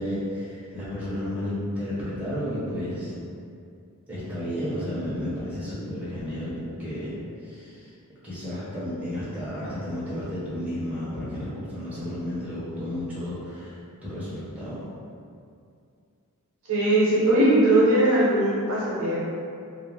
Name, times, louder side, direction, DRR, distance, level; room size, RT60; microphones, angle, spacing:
voice 1, 0.0-3.1 4.1-7.2 7.4-7.9 8.2-14.8, left 1 dB, 5° right, -11 dB, 0.6 m, -32 dB
voice 2, 16.7-19.2, right 1 dB, 70° right, -7 dB, 0.7 m, -20 dB
2.4 x 2.0 x 3.0 m, 2.4 s
head